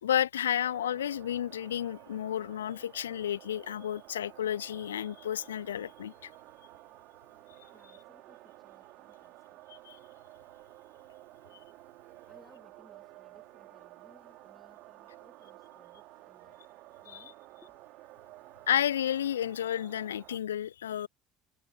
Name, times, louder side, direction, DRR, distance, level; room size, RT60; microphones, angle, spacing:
voice 1, 0.0-6.3 9.9-10.0 18.7-21.1, left 10 dB, 75° left, 0.3 m, -31 dB
sound 1, 0.6-20.4, right 20 dB, 55° right, 3.5 m, -53 dB
voice 2, 7.7-9.7 12.3-16.6 17.0-17.8, left 1 dB, 5° left, 3.3 m, -63 dB
figure-of-eight pair, 60°, 0 cm